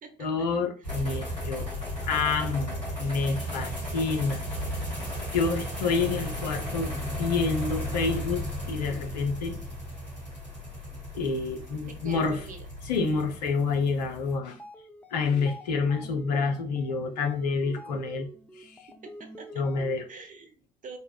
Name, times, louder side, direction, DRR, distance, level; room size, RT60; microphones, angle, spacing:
voice 1, 0.2-1.7 2.0-4.4 5.3-6.9 7.2-8.4 8.7-9.6 11.1-12.4 12.9-14.6 15.1-18.3 18.6-18.9 19.5-20.0, left 4 dB, 75° left, 4 dB, 0.7 m, -28 dB
sound 1, 0.8-14.4, equal, 90° left, 1.6 m, -35 dB
voice 2, 11.9-12.7 18.9-19.6 20.1-21.0, right 4 dB, 40° right, 6 dB, 1.0 m, -45 dB
sound 2, 14.5-20.2, equal, 5° left, 0.5 m, -46 dB
5.3 x 2.3 x 2.3 m, 0.40 s
figure-of-eight pair, 50°, 21 cm